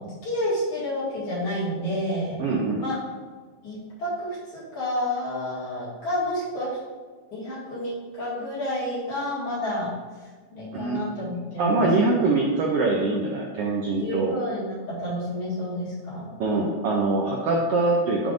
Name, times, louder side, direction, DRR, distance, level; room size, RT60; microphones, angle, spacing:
voice 1, 0.0-2.3 2.8-2.9 3.6-6.8 7.3-9.9 10.5-11.9 14.0-16.3, left 1 dB, 55° left, -9 dB, 2.9 m, -30 dB
voice 2, 2.4-2.8 10.7-11.2 11.6-14.3 16.4-18.3, right 3 dB, 85° right, -2 dB, 1.3 m, -23 dB
10.5 x 3.6 x 2.6 m, 1.5 s
omnidirectional pair, 3.5 m